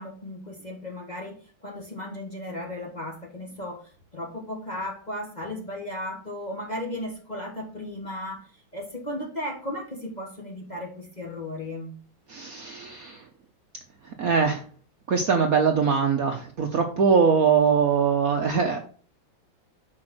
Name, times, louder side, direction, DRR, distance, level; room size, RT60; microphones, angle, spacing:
voice 1, 0.0-3.8 4.1-8.4 8.7-12.0, left 1 dB, 25° left, 0 dB, 1.3 m, -35 dB
voice 2, 12.3-13.2 14.2-14.6 15.1-18.8, right 6 dB, 55° right, 4 dB, 1.1 m, -22 dB
6.3 x 4.9 x 6.0 m, 0.42 s
omnidirectional pair, 2.2 m